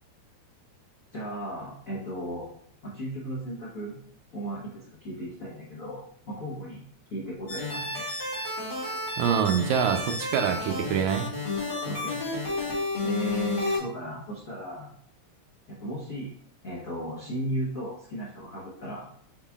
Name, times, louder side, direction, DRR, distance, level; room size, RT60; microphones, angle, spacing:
voice 1, 1.1-2.5 2.8-4.0 4.3-6.8 7.1-8.0 11.8-12.2 13.0-14.9 15.7-16.3 16.6-19.1, right 1 dB, 70° left, -7 dB, 0.8 m, -35 dB
sound 1, 7.5-13.8, left 3 dB, 30° left, 1.0 m, -31 dB
voice 2, 9.2-11.3, right 8 dB, 80° right, 6 dB, 1.9 m, -25 dB
5.6 x 3.9 x 2.3 m, 0.63 s
omnidirectional pair, 3.3 m